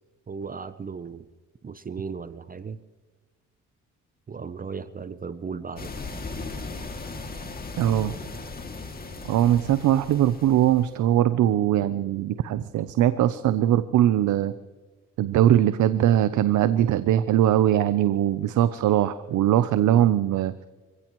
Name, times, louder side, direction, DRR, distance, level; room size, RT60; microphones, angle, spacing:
voice 1, 0.3-1.3 1.6-2.8 4.3-5.9, right 5 dB, 30° right, 13 dB, 0.7 m, -36 dB
sound 1, 5.8-11.0, left 3 dB, 30° left, 2.5 m, -37 dB
voice 2, 7.8-8.1 9.2-14.5 15.2-20.5, right 11 dB, 75° right, 13 dB, 0.7 m, -21 dB
26.5 x 16.5 x 3.1 m, 1.3 s
cardioid pair, 90°, 30 cm